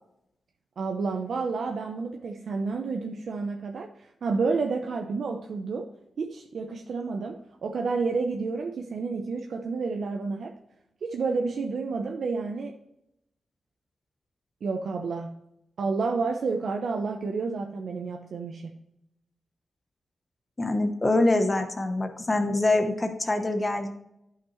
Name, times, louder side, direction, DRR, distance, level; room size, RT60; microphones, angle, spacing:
voice 1, 0.8-5.9 6.2-10.6 11.0-12.8 14.6-15.4 15.8-18.8, right 4 dB, 65° right, 3 dB, 0.7 m, -30 dB
voice 2, 20.6-23.9, left 2 dB, 25° left, 6 dB, 0.9 m, -24 dB
11.0 x 5.9 x 3.2 m, 0.82 s
wide cardioid pair, 115°, 0 cm